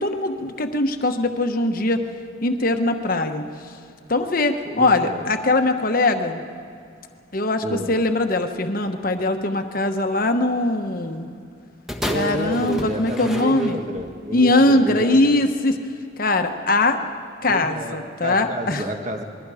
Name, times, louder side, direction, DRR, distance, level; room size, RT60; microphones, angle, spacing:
voice 1, 0.0-2.0 2.4-3.5 4.1-6.4 7.3-11.3 12.1-13.8 14.3-15.8 16.2-17.0 17.4-18.8, left 2 dB, 45° left, 6 dB, 1.1 m, -21 dB
voice 2, 4.6-5.3 7.6-7.9 12.0-15.4 17.5-19.2, right 1 dB, 35° right, 4 dB, 1.6 m, -30 dB
sound 1, 11.9-14.1 14.9-15.0, left 1 dB, ahead, 1.3 m, -32 dB
27.5 x 21.5 x 5.0 m, 2.4 s
head